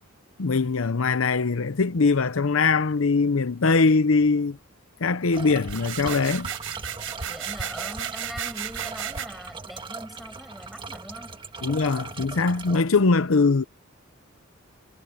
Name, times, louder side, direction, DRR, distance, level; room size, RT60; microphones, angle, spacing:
voice 1, 0.4-4.6 5.0-6.5 11.6-13.6, left 4 dB, 70° left, 0.7 m, -22 dB
sound 1, 5.3-12.8, right 4 dB, 25° right, 1.7 m, -39 dB
sound 2, 5.6-9.3, right 8 dB, 70° right, 6.3 m, -34 dB
voice 2, 7.2-11.4, equal, ahead, 6.9 m, -41 dB
head